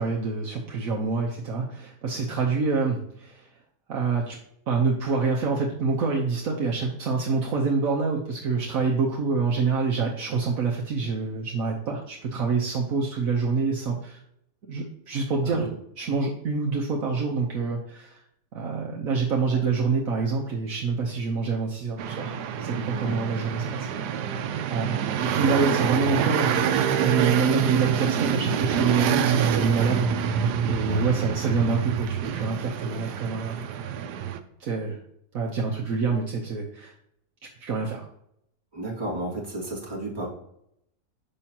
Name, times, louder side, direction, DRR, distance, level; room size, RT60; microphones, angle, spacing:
voice 1, 0.0-3.5 3.9-4.4 4.7-14.2 14.6-15.7 16.0-18.2 18.5-22.3 22.6-24.4 24.7-26.5 27.0-33.7 34.6-35.0 35.3-36.9 37.6-38.1, right 4 dB, 60° right, -2 dB, 1.2 m, -27 dB
sound 1, 22.0-34.4, right 8 dB, 80° right, 1.2 m, -26 dB
voice 2, 38.7-40.3, right 1 dB, 15° right, -5 dB, 2.1 m, -33 dB
6.8 x 5.6 x 2.8 m, 0.74 s
omnidirectional pair, 1.7 m